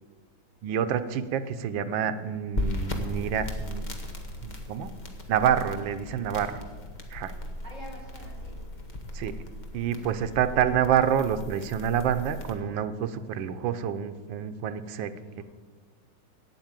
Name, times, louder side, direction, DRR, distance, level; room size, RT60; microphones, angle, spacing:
voice 1, 0.6-3.8 4.4-4.9 5.3-6.6 7.1-7.3 9.1-9.3 9.7-15.4, right 8 dB, 85° right, 10 dB, 1.4 m, -27 dB
sound 1, 2.5-12.5, left 1 dB, 30° left, 1.1 m, -37 dB
voice 2, 7.6-8.6, equal, 20° right, -5 dB, 4.5 m, -45 dB
8.7 x 8.2 x 8.9 m, 1.5 s
omnidirectional pair, 2.0 m